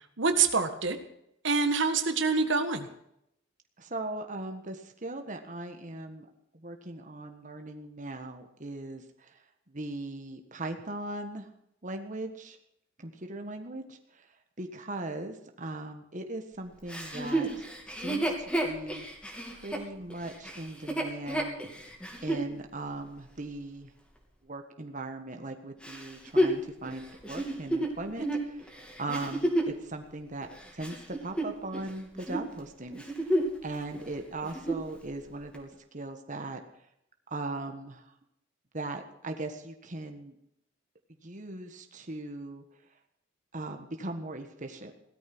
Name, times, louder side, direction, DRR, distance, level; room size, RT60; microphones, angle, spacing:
voice 1, 0.2-1.0 1.4-2.9, right 4 dB, 65° right, 8 dB, 1.6 m, -26 dB
voice 2, 3.8-6.3 6.5-11.5 11.8-12.6 13.0-17.7 18.0-18.3 18.6-19.1 19.5-21.9 22.2-23.9 24.4-30.5 30.7-36.6 37.3-38.1 38.7-40.4 41.2-42.6 43.5-44.9, right 2 dB, 40° right, 5 dB, 1.5 m, -39 dB
Chuckle chortle, 16.9-22.5 23.1-23.2 25.8-29.8 30.4-31.9 32.2-32.5 32.9-33.6 33.9-34.0 34.4-34.9 35.5-35.6, right 1 dB, 5° left, 2.9 m, -31 dB
17.5 x 13.0 x 6.2 m, 0.76 s
head